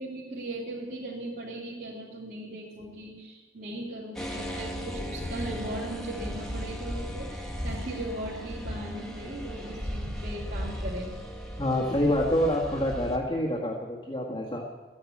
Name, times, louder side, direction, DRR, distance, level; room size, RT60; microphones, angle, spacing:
voice 1, 0.0-11.1, right 1 dB, 50° right, -8 dB, 3.1 m, -38 dB
sound 1, 4.2-13.2, equal, ahead, 1.8 m, -36 dB
voice 2, 11.6-14.6, left 1 dB, 25° left, -3 dB, 1.8 m, -27 dB
14.5 x 10.5 x 8.6 m, 1.3 s
head